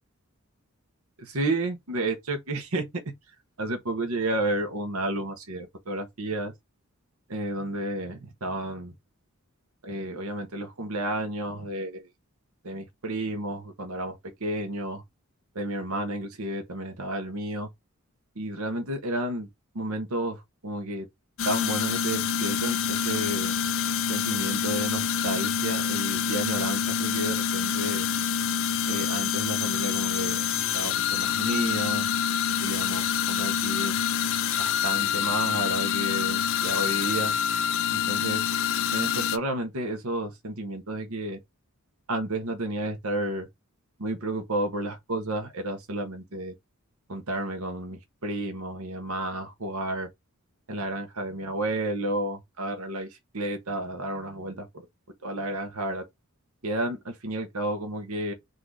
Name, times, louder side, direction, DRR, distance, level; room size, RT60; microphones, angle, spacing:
voice 1, 1.2-2.8 3.6-6.5 7.3-8.9 9.8-12.0 12.6-14.2 14.4-15.0 15.5-17.7 18.4-19.5 19.7-20.4 20.6-21.1 21.4-23.5 24.1-28.1 28.9-30.4 30.7-32.1 32.6-34.0 34.6-37.4 37.9-38.5 38.9-41.4 42.1-43.5 44.0-46.5 47.1-50.1 50.7-53.1 53.3-54.7 55.2-56.0 56.6-58.3, right 1 dB, 75° right, 1.0 m, -31 dB
sound 1, 21.4-39.4, left 8 dB, 60° left, 0.5 m, -27 dB
3.9 x 2.7 x 4.7 m
head